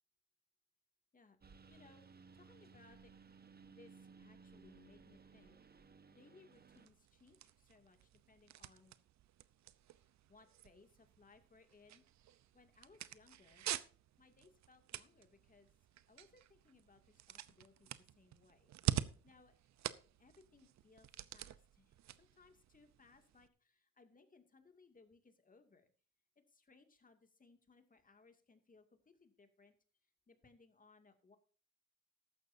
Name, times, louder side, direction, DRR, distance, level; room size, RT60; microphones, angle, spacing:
voice 1, 1.1-2.1 2.3-3.1 3.7-5.6 6.1-9.0 10.3-12.0 12.5-13.7 14.2-19.6 20.2-25.9 26.4-29.8 30.0-31.4, left 4 dB, 25° left, 6 dB, 2.4 m, -66 dB
Engine, 1.4-6.9, right 5 dB, 30° right, 1.2 m, -60 dB
sound 1, 6.5-23.5, right 12 dB, 65° right, 0.7 m, -47 dB
14.5 x 12.0 x 2.7 m, 0.40 s
cardioid pair, 90°, 30 cm